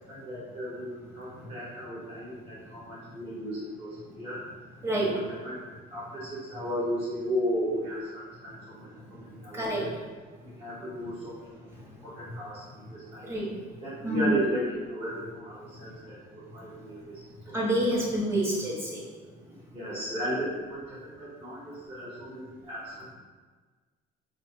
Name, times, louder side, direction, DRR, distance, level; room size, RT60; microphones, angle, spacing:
voice 1, 0.1-4.4 4.9-9.9 10.4-11.7 12.0-13.3 13.8-17.2 17.5-17.6 19.7-23.1, equal, 35° right, -10 dB, 1.4 m, -35 dB
voice 2, 9.5-9.8 13.2-13.5 14.0-14.3 17.5-19.1, right 1 dB, 15° right, -5 dB, 1.4 m, -28 dB
4.3 x 2.3 x 4.6 m, 1.4 s
cardioid pair, 110°, 17 cm